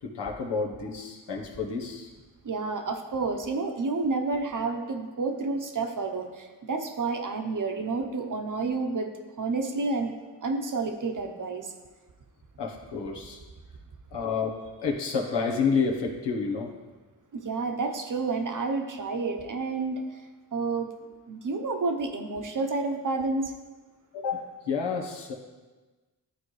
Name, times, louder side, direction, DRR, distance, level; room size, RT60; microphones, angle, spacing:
voice 1, 0.0-2.1 12.6-13.4 14.1-16.7 24.1-25.3, left 5 dB, 75° left, 0 dB, 1.2 m, -29 dB
voice 2, 2.4-9.1 9.4-10.1 10.4-11.7 17.3-20.0 20.5-20.9 21.3-23.5, right 3 dB, 50° right, 4 dB, 1.0 m, -30 dB
11.0 x 4.1 x 3.2 m, 1.3 s
cardioid pair, 50°, 41 cm